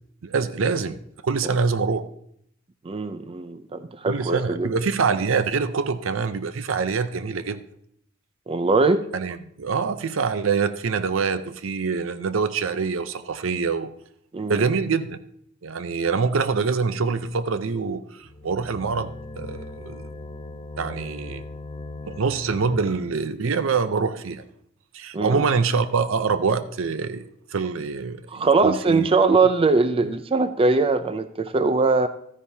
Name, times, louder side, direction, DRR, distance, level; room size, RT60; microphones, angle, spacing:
voice 1, 0.2-1.0 1.2-2.0 4.0-7.6 9.1-13.9 14.4-15.2 15.6-20.0 20.8-21.4 22.1-24.4 24.9-29.1, right 5 dB, 75° right, 12 dB, 0.6 m, -25 dB
voice 2, 2.8-4.7 8.5-9.1 14.3-14.7 25.1-25.5 28.3-32.1, right 3 dB, 30° right, 11 dB, 0.4 m, -21 dB
sound 1, 18.2-23.4, left 2 dB, 25° left, 0.6 m, -39 dB
13.0 x 9.9 x 2.7 m, 0.71 s
head